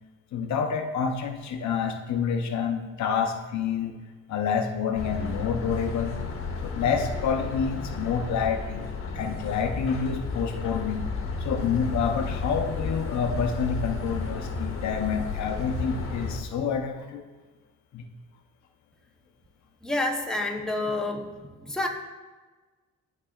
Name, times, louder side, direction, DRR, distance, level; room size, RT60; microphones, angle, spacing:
voice 1, 0.3-3.9 4.3-6.2 6.6-8.9 9.1-11.1 11.4-17.2 17.9-18.0, left 6 dB, 65° left, 5 dB, 0.7 m, -28 dB
sound 1, 4.9-16.4, left 4 dB, 45° left, 1.1 m, -32 dB
voice 2, 19.8-21.9, left 2 dB, ahead, 1 dB, 0.8 m, -29 dB
11.5 x 4.0 x 2.4 m, 1.3 s
cardioid pair, 90°, 30 cm